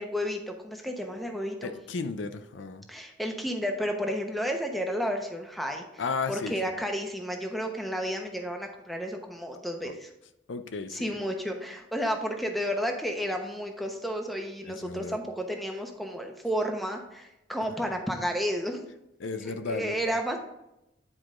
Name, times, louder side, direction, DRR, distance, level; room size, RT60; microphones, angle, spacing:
voice 1, 0.0-1.7 2.9-6.0 6.3-10.1 10.9-18.8 19.4-20.4, equal, ahead, 3 dB, 0.9 m, -32 dB
voice 2, 1.6-2.9 6.0-6.5 9.8-9.9 10.5-11.1 14.6-15.2 17.8-18.0 19.2-20.2, left 4 dB, 80° left, 9 dB, 0.5 m, -34 dB
9.7 x 4.8 x 3.7 m, 0.88 s
head